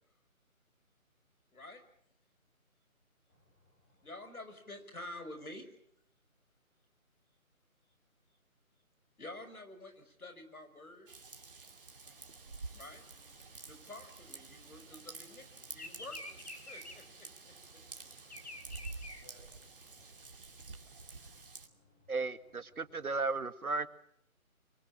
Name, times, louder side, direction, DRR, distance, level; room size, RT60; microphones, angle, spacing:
voice 1, 1.5-1.8 4.0-5.7 9.2-11.1 12.7-13.0 13.6-17.5, left 2 dB, 85° left, 7 dB, 6.3 m, -49 dB
voice 2, 3.3-4.1 18.3-23.4, left 1 dB, 10° left, -2 dB, 5.4 m, -67 dB
Raindrop / Vehicle horn car horn honking / Trickle dribble, 11.1-21.7, right 3 dB, 40° right, 2.6 m, -49 dB
Bird vocalization bird call bird song, 12.1-15.0 15.3-20.0, left 2 dB, 50° left, 3.6 m, -49 dB
voice 3, 22.1-23.9, right 3 dB, 85° right, 10 dB, 2.1 m, -35 dB
26.0 x 24.0 x 7.5 m, 0.70 s
figure-of-eight pair, 175°, 42 cm